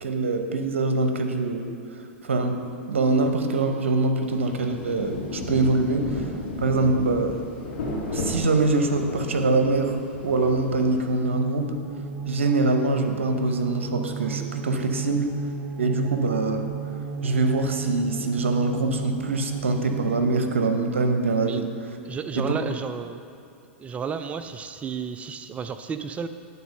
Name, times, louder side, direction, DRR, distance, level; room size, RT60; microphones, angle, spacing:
voice 1, 0.0-6.3 6.6-7.4 8.1-10.0 10.2-11.7 12.3-15.3 15.8-16.7 17.2-21.7 22.3-22.5, right 3 dB, 80° right, 6 dB, 0.8 m, -24 dB
Rain, 4.2-11.4, left 2 dB, 65° left, 1.6 m, -34 dB
sound 1, 11.2-20.6, right 6 dB, 50° right, 1.3 m, -33 dB
voice 2, 22.0-23.2 23.8-26.3, right 6 dB, 20° right, 9 dB, 0.3 m, -32 dB
9.5 x 4.1 x 5.3 m, 2.6 s
hypercardioid pair, 100°, 7 cm